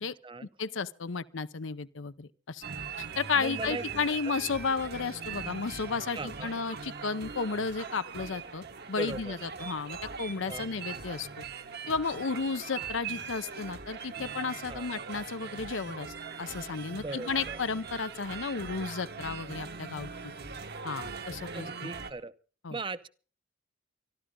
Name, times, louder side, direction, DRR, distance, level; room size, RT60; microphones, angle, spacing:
voice 1, 0.0-0.5 3.4-3.8 4.2-4.3 6.1-6.5 9.0-9.4 10.4-10.7 14.7-14.9 16.9-17.6 21.5-22.3 22.7-23.1, right 3 dB, 25° right, 0.7 m, -39 dB
voice 2, 0.6-2.6 3.0-11.4 11.9-16.1 16.4-20.3 20.8-21.9 22.6-22.8, left 5 dB, 75° left, 0.7 m, -33 dB
sound 1, 2.6-22.1, right 6 dB, 55° right, 1.4 m, -41 dB
25.5 x 12.5 x 3.8 m
head